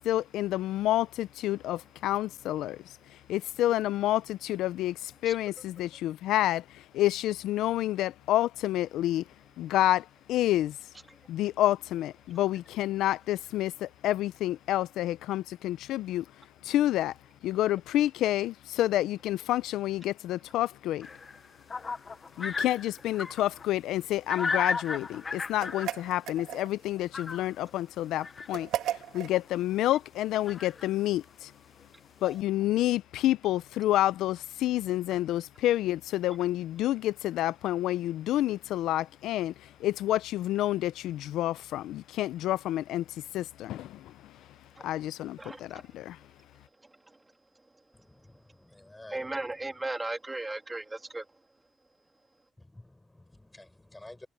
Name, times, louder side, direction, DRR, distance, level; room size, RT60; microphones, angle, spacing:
voice 1, 0.0-2.8 3.3-6.6 6.9-9.2 9.6-10.8 11.3-16.2 16.6-17.1 17.4-21.1 22.4-28.7 29.1-31.5 32.2-39.5 39.8-43.0 43.3-44.0 44.8-46.2, left 14 dB, 85° left, 0.4 m, -29 dB
sound 1, 21.0-23.6 24.3-26.1 27.0-27.8 28.2-28.6 29.4-29.5 29.7-29.8 30.5-30.9 31.8-31.9 32.2-32.4, left 4 dB, 35° left, 0.6 m, -35 dB
sound 2, 25.6-26.9 28.5-29.4, right 12 dB, 85° right, 1.9 m, -35 dB
voice 2, 45.4-45.8 49.1-51.2, right 2 dB, 15° right, 3.0 m, -36 dB
voice 3, 47.9-49.8 52.6-54.3, left 1 dB, 10° left, 6.2 m, -52 dB
cardioid pair, 90°, 0 cm